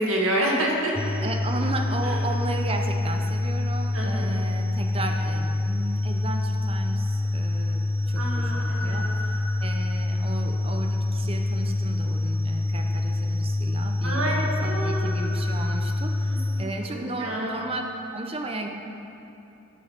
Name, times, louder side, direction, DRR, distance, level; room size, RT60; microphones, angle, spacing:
voice 1, 0.0-1.1 2.0-2.2 3.9-4.3 8.1-9.1 14.0-15.1 16.3-17.5, right 1 dB, 85° right, -3 dB, 1.7 m, -28 dB
sound 1, 1.0-16.6, left 2 dB, 10° left, 0.4 m, -26 dB
voice 2, 1.2-17.8 18.1-18.7, right 2 dB, 30° right, 3 dB, 0.7 m, -34 dB
11.0 x 6.3 x 4.5 m, 2.9 s
head